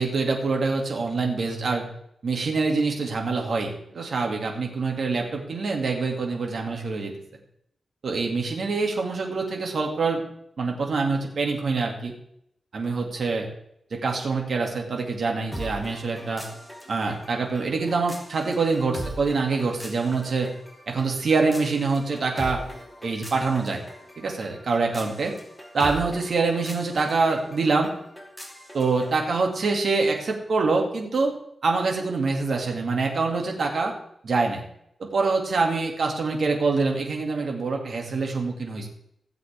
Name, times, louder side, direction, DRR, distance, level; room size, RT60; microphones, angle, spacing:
voice 1, 0.0-1.8 2.2-7.1 8.0-10.2 10.6-12.1 12.7-13.5 13.9-16.5 16.9-20.5 20.9-22.6 23.0-23.8 24.2-25.3 25.7-27.9 28.7-31.3 31.6-33.9 34.2-34.6 35.0-38.9, right 4 dB, 60° right, 1 dB, 2.4 m, -25 dB
sound 1, 15.5-29.2, right 1 dB, ahead, 2.7 m, -41 dB
16.5 x 7.8 x 3.5 m, 0.75 s
wide cardioid pair, 105°, 0 cm